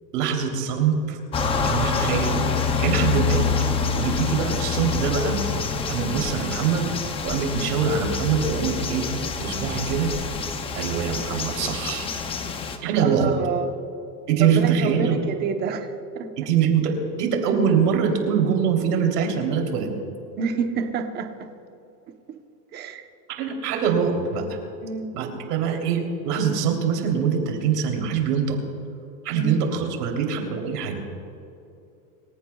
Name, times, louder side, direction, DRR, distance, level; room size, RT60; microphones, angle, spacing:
voice 1, 0.1-3.5 3.9-5.4 5.9-6.9 7.2-9.1 9.4-10.1 10.8-12.1 12.8-13.3 14.3-15.2 16.4-19.9 23.4-24.5 25.1-28.6 29.2-31.0, right 7 dB, 80° right, 2 dB, 3.4 m, -23 dB
sound 1, 1.3-12.8, left 5 dB, 15° left, 0.5 m, -26 dB
voice 2, 13.0-13.7 14.4-16.3 20.4-21.5 22.3-22.4 22.7-23.0 24.8-25.1 29.3-29.5, right 5 dB, 20° right, 6 dB, 1.0 m, -28 dB
26.0 x 15.5 x 2.4 m, 2.7 s
supercardioid pair, 155°, 46 cm